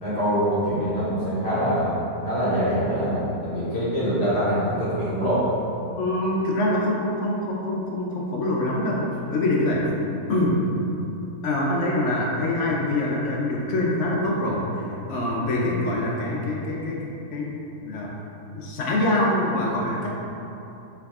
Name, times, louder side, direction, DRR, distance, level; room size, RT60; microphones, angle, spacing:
voice 1, 0.0-5.4, equal, 45° left, -10 dB, 1.5 m, -24 dB
voice 2, 6.0-9.0 9.3-9.8 10.3-10.6 11.4-14.6 15.1-17.5 17.8-18.1 18.6-20.1, left 1 dB, 65° left, -3 dB, 0.8 m, -24 dB
3.5 x 3.2 x 3.5 m, 2.9 s
omnidirectional pair, 1.7 m